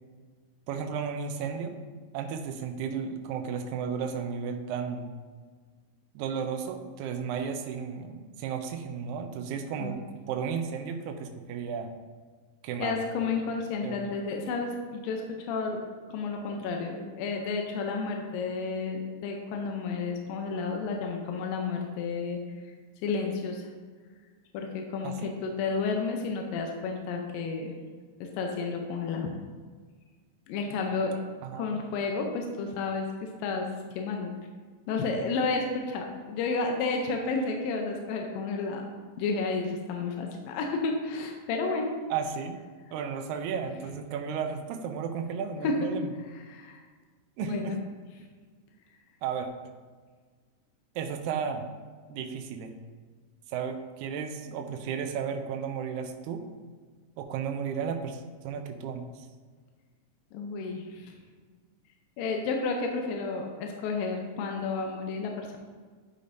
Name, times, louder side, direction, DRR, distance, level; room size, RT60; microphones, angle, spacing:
voice 1, 0.7-1.8 2.1-5.1 6.1-10.0 10.3-11.9 12.6-13.0 13.8-14.0 25.0-25.4 31.4-31.7 42.1-42.6 42.9-46.1 47.4-47.8 49.2-49.5 50.9-51.7 52.1-52.7 53.5-56.4 57.2-59.3, right 6 dB, 80° right, 5 dB, 1.7 m, -34 dB
voice 2, 12.8-15.8 16.1-22.4 23.0-23.6 24.5-27.7 28.2-29.3 30.5-31.2 31.5-33.1 33.4-33.7 33.9-34.3 34.9-38.9 39.2-41.9 45.6-45.9 46.3-46.8 47.4-47.8 60.3-61.1 62.2-65.6, left 4 dB, 80° left, 2 dB, 2.5 m, -31 dB
11.5 x 5.1 x 2.6 m, 1.5 s
omnidirectional pair, 4.1 m